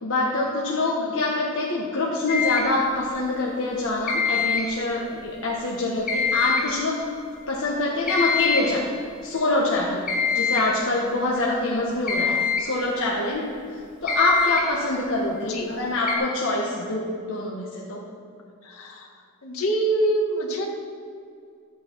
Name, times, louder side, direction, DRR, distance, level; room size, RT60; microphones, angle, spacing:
voice 1, 0.0-7.0 7.5-8.8 9.2-10.0 10.3-13.4 14.0-18.0, left 2 dB, 65° left, -4 dB, 1.3 m, -25 dB
sound 1, 2.3-2.8 4.1-4.8 6.1-6.8 8.1-8.8 10.1-10.8 12.1-12.7 14.1-14.8 16.1-16.2, left 5 dB, 40° left, 1.9 m, -24 dB
voice 2, 11.7-12.1 15.3-15.7 18.6-19.1 19.4-20.7, right 1 dB, 85° left, -1 dB, 2.0 m, -27 dB
13.0 x 8.4 x 4.6 m, 2.4 s
head